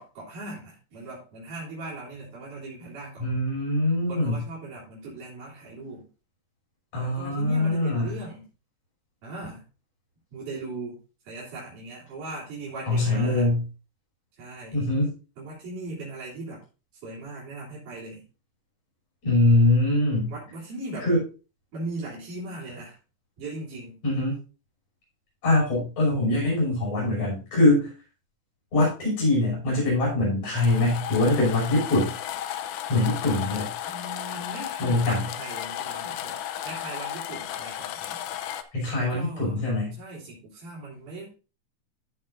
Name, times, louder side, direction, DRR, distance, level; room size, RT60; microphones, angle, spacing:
voice 1, 0.0-3.3 4.1-6.1 7.0-8.5 9.2-9.6 10.3-11.0 11.2-13.5 14.4-14.8 15.4-16.6 17.0-18.3 20.3-21.1 21.7-23.0 23.4-24.0 33.9-38.2 39.0-39.6 40.0-41.3, right 2 dB, 70° right, -7 dB, 5.1 m, -39 dB
voice 2, 3.2-4.4 6.9-8.1 12.9-13.6 14.7-15.1 19.2-20.3 21.0-21.2 24.0-24.4 25.4-27.9 28.7-32.1 32.9-33.7 34.8-35.2 38.7-40.0, left 2 dB, 50° left, -5 dB, 7.1 m, -23 dB
sound 1, 30.6-38.6, left 11 dB, 75° left, 2.0 m, -34 dB
15.0 x 6.7 x 2.6 m, 0.35 s
omnidirectional pair, 3.7 m